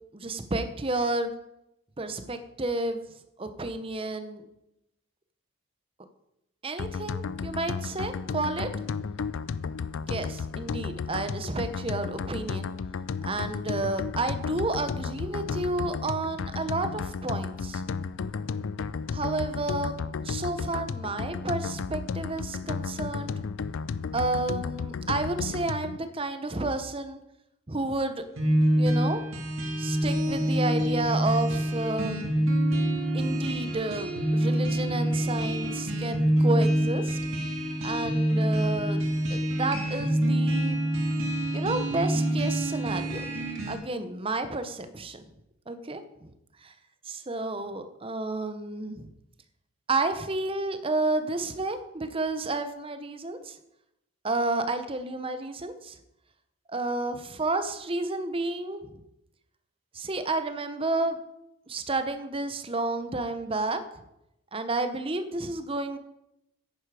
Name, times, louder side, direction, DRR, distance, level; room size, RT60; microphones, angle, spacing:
voice 1, 0.1-1.3 2.0-3.0 3.4-4.4 6.6-8.7 10.0-12.7 13.2-17.8 19.1-20.0 20.2-23.3 24.1-27.2 27.7-28.2 28.8-29.2 29.8-32.2 33.1-37.2 37.8-39.0 39.3-40.8 41.5-43.2 43.7-45.3 45.7-46.3 46.6-46.7 47.1-49.1 49.9-53.6 54.2-55.9 56.7-59.0 59.9-61.2 61.7-63.8 64.5-66.0, right 2 dB, 25° right, 9 dB, 0.7 m, -31 dB
sound 1, 6.8-26.0, left 5 dB, 60° left, 0.4 m, -33 dB
sound 2, 28.4-43.7, right 1 dB, 65° right, 2.3 m, -26 dB
10.0 x 9.7 x 4.8 m, 0.85 s
head